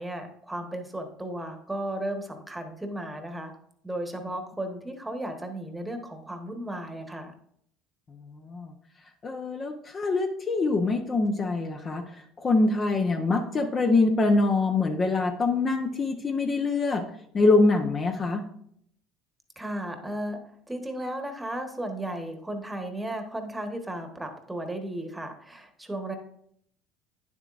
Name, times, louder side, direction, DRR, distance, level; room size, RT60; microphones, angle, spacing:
voice 1, 0.0-3.5 3.8-7.3 19.6-20.4 20.7-26.2, right 1 dB, 10° right, 5 dB, 1.2 m, -35 dB
voice 2, 8.3-8.7 9.2-12.1 12.4-17.1 17.3-18.4, left 3 dB, 30° left, 5 dB, 0.8 m, -24 dB
9.3 x 7.2 x 2.5 m, 0.68 s
supercardioid pair, 95°, 0 cm